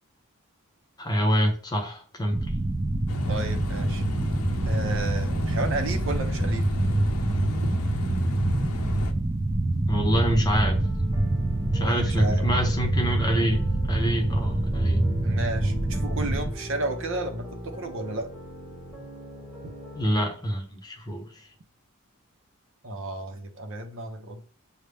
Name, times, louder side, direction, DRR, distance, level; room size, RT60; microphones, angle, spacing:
voice 1, 1.0-2.4 9.9-10.8 11.7-15.0 20.0-21.4, equal, 20° left, 2 dB, 0.9 m, -26 dB
sound 1, 2.3-16.5, right 2 dB, 25° right, 0.4 m, -26 dB
sound 2, 3.1-9.1, left 2 dB, 80° left, 0.6 m, -34 dB
voice 2, 3.3-4.0 4.7-6.7 7.6-7.7 11.8-12.4 15.2-18.3 22.8-24.5, right 2 dB, 60° right, 5 dB, 0.7 m, -32 dB
sound 3, 10.5-20.1, equal, 5° right, 1.7 m, -37 dB
6.4 x 2.2 x 3.4 m, 0.41 s
head